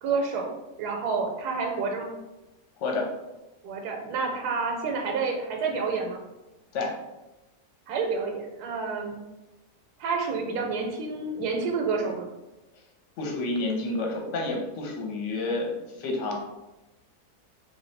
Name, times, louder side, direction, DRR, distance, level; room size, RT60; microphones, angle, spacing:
voice 1, 0.0-2.1 3.6-6.2 7.9-9.2 10.0-12.3, right 4 dB, 85° right, 1 dB, 1.1 m, -29 dB
voice 2, 13.2-16.4, left 2 dB, 55° left, 1 dB, 1.0 m, -29 dB
3.1 x 2.6 x 4.4 m, 1.0 s
omnidirectional pair, 1.7 m